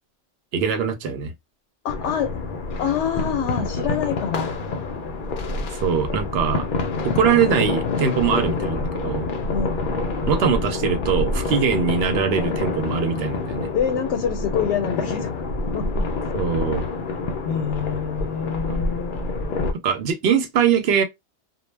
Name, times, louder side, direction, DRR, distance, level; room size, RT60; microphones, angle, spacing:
voice 1, 0.5-1.3 5.7-6.7 7.0-9.3 10.3-13.7 16.3-16.8 18.7-18.8 19.8-21.0, right 7 dB, 65° right, 0.8 m, -22 dB
voice 2, 1.8-2.3 2.8-4.5 9.5-9.8 13.7-15.4 15.7-16.1 17.5-19.4, left 8 dB, 85° left, 0.9 m, -26 dB
sound 1, 1.9-19.7, left 3 dB, 60° left, 0.6 m, -27 dB
2.2 x 2.0 x 3.1 m
omnidirectional pair, 1.2 m